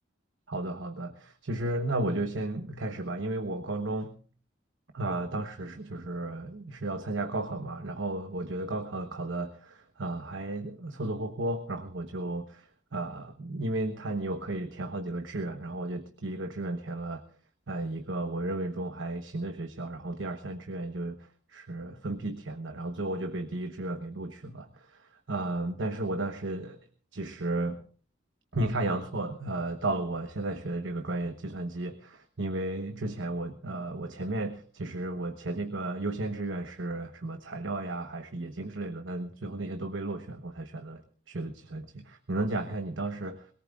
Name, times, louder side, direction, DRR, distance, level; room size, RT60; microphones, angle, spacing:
voice 1, 0.5-4.2 4.9-17.2 17.7-26.8 27.1-27.8 28.5-41.0 41.3-43.5, right 2 dB, 80° right, 7 dB, 1.1 m, -34 dB
21.5 x 18.5 x 2.4 m, 0.41 s
head